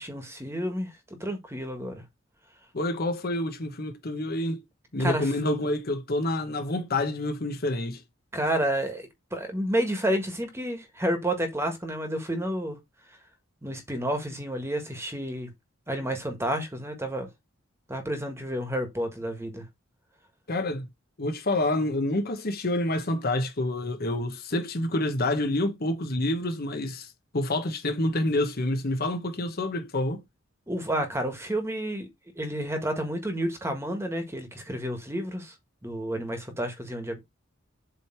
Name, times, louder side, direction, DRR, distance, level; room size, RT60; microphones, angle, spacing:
voice 1, 0.0-2.0 5.0-5.3 8.3-12.8 13.6-15.5 15.9-17.3 17.9-19.7 30.7-32.1 32.4-35.5 35.8-37.2, right 1 dB, 15° right, 1.5 m, -30 dB
voice 2, 2.7-4.6 4.9-8.0 20.5-20.9 21.2-30.2, left 1 dB, 50° left, 1.1 m, -28 dB
7.7 x 3.4 x 4.5 m
head